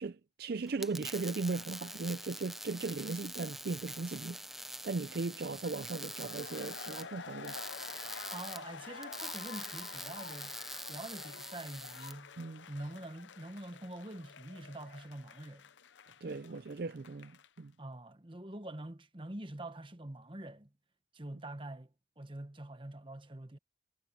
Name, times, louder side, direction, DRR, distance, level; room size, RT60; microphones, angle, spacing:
voice 1, 0.0-4.4 4.8-7.6 12.4-12.7 16.2-17.7, right 3 dB, 55° right, 0.5 m, -37 dB
sound 1, 0.7-12.1, right 1 dB, ahead, 0.5 m, -45 dB
sound 2, 5.9-17.6, left 6 dB, 85° left, 0.7 m, -49 dB
voice 2, 8.3-10.6 10.9-12.3 12.7-15.7 17.8-20.7 21.1-23.6, right 1 dB, 30° right, 1.2 m, -45 dB
head